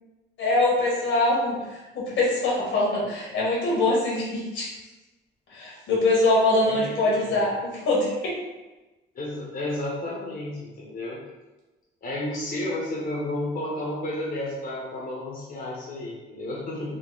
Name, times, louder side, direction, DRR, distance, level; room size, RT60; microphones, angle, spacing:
voice 1, 0.4-4.7 5.5-8.3 16.9-17.0, left 2 dB, 75° left, -5 dB, 1.5 m, -23 dB
voice 2, 6.6-7.6 9.1-11.2 12.0-16.9, left 1 dB, 45° left, -5 dB, 1.0 m, -32 dB
3.7 x 2.0 x 3.9 m, 1.1 s
cardioid pair, 90°, 20 cm